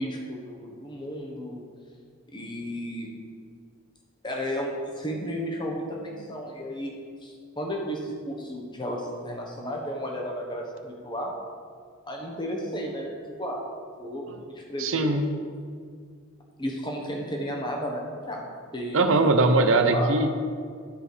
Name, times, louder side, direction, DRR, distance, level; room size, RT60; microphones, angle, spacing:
voice 1, 0.0-1.7 2.3-3.1 4.2-6.9 7.2-11.3 12.1-13.1 13.4-13.6 14.0-15.1 16.6-18.4 18.7-19.4 19.9-20.1, equal, 20° left, 0 dB, 1.2 m, -33 dB
voice 2, 14.8-15.3 18.9-20.4, right 2 dB, 65° right, 6 dB, 0.7 m, -21 dB
12.0 x 5.0 x 5.0 m, 2.1 s
head